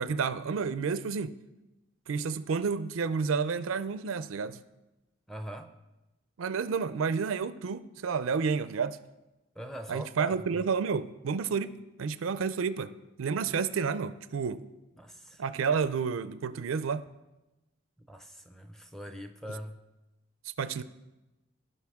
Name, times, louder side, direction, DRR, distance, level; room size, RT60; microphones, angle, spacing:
voice 1, 0.0-1.3 2.1-4.6 6.4-9.0 9.9-12.9 13.2-14.6 15.4-17.1 19.5-19.6 20.6-20.8, right 5 dB, 85° right, 14 dB, 0.4 m, -30 dB
voice 2, 5.3-5.7 9.6-10.3 15.0-15.4 18.1-19.8, right 1 dB, ahead, 6 dB, 0.5 m, -42 dB
16.0 x 5.5 x 3.6 m, 1.0 s
head